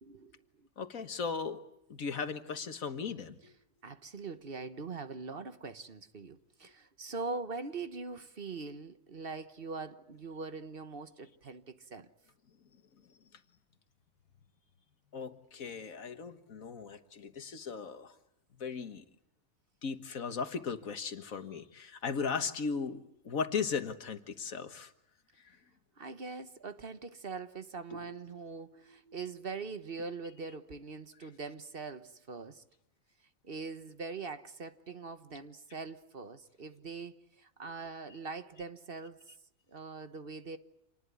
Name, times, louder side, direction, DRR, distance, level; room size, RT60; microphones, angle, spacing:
voice 1, 0.0-0.7 3.4-3.5 3.8-12.1 26.0-32.6 33.4-39.2 39.7-40.6, right 4 dB, 45° right, 1.3 m, -42 dB
voice 2, 0.8-1.6 1.9-3.5 15.1-18.1 18.6-19.0 19.8-23.0 23.3-24.9 27.9-28.2, left 5 dB, 85° left, 1.9 m, -37 dB
27.5 x 20.0 x 9.4 m
omnidirectional pair, 1.4 m